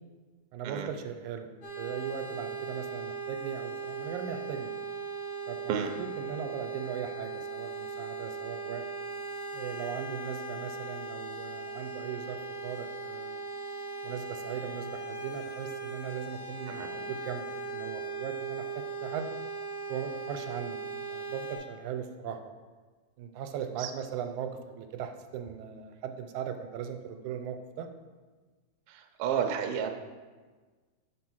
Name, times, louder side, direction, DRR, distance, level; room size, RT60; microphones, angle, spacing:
voice 1, 0.5-1.5 1.8-4.7 5.5-8.8 9.5-13.4 14.0-19.3 19.9-20.8 21.1-22.5 23.2-27.9, right 8 dB, 90° right, 6 dB, 2.0 m, -39 dB
sound 1, 1.6-21.6, right 4 dB, 80° left, 3.6 m, -38 dB
voice 2, 28.9-29.9, right 8 dB, 70° right, 4 dB, 1.4 m, -31 dB
6.2 x 5.6 x 6.1 m, 1.4 s
omnidirectional pair, 3.4 m